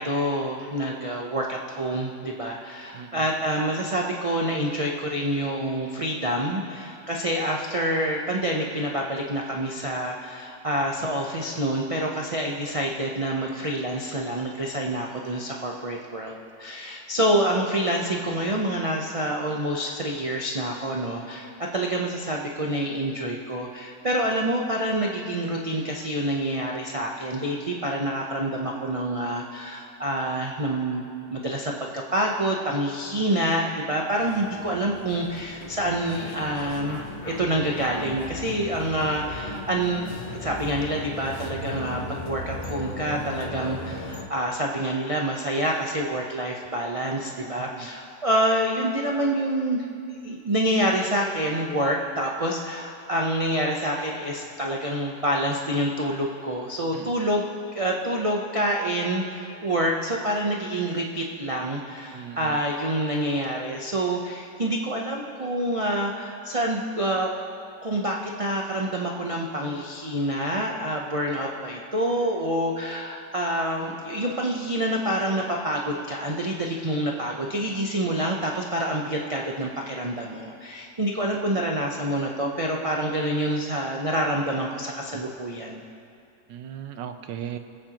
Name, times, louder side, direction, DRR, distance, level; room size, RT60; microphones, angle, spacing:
voice 1, 0.0-31.0 31.3-57.5 57.7-67.3 67.8-85.8, right 1 dB, 45° right, -1 dB, 0.4 m, -27 dB
voice 2, 2.9-3.3 47.6-47.9 56.9-57.1 62.1-62.6 86.5-87.6, right 9 dB, 85° right, 7 dB, 1.4 m, -37 dB
sound 1, 34.2-44.3, left 2 dB, 55° left, 0.3 m, -36 dB
24.5 x 8.7 x 3.0 m, 2.4 s
omnidirectional pair, 1.9 m